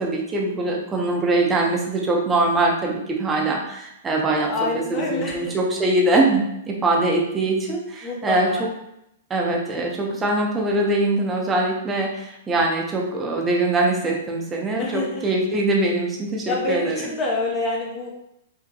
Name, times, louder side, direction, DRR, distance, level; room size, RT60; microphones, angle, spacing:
voice 1, 0.0-8.7 9.3-17.1, right 2 dB, 15° right, 0 dB, 0.7 m, -22 dB
voice 2, 4.4-5.5 8.0-8.6 14.8-15.2 16.5-18.1, left 3 dB, 25° left, -2 dB, 0.7 m, -27 dB
5.0 x 2.8 x 2.8 m, 0.80 s
hypercardioid pair, 155°, 0 cm